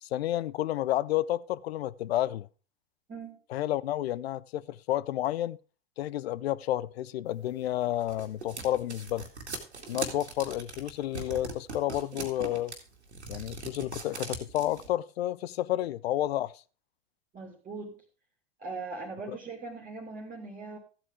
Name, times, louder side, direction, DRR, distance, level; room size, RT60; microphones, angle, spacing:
voice 1, 0.0-2.5 3.5-5.6 6.0-9.3 9.9-12.7 13.3-16.6 19.3-19.4, left 13 dB, 70° left, 0.6 m, -31 dB
sound 1, 7.6-14.9, right 3 dB, 90° right, 2.1 m, -40 dB
voice 2, 17.3-18.0 18.6-20.8, right 3 dB, 25° right, 2.5 m, -40 dB
14.5 x 8.4 x 3.6 m
hypercardioid pair, 90°, 32 cm